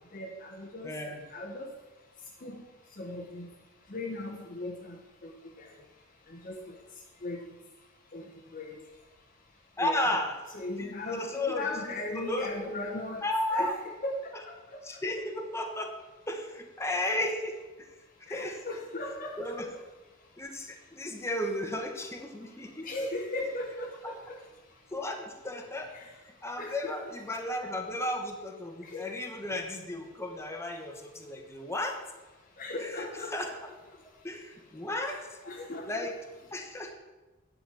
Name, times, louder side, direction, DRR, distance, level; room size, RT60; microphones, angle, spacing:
voice 1, 0.1-0.9 1.3-1.7 2.4-2.6 3.0-3.5 3.9-5.0 5.2-5.3 5.6-5.7 6.4-6.6 7.2-7.4 8.1-8.2 8.5-8.7 9.8-10.1 10.5-14.6 18.3-19.6 22.8-24.2 25.9-26.0 26.6-27.1 28.8-29.0 32.6-33.5 35.1-35.2 35.4-36.1, left 2 dB, 40° left, 1 dB, 0.9 m, -37 dB
voice 2, 0.8-1.2 9.8-10.3 10.7-11.7 12.1-12.7 13.2-13.7 14.8-15.9 16.3-17.9 18.3-18.8 19.4-19.7 20.4-22.9 24.0-24.1 24.9-25.9 26.4-32.0 33.3-33.5 34.2-35.3 35.9-36.1 36.5-36.9, left 1 dB, 15° left, 3 dB, 1.2 m, -34 dB
10.0 x 5.2 x 7.6 m, 1.2 s
head